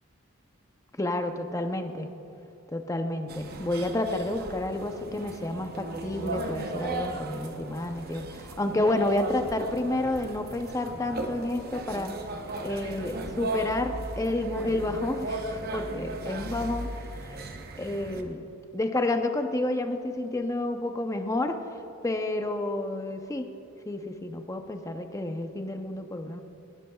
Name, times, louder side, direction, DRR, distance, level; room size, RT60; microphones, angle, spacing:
voice 1, 1.0-2.1 2.7-12.2 12.6-16.9 17.8-21.6 22.0-23.5 23.9-26.4, left 2 dB, 15° left, 6 dB, 0.6 m, -30 dB
sound 1, 3.3-18.2, right 2 dB, 45° right, 0.8 m, -36 dB
18.0 x 12.0 x 2.3 m, 2.8 s
head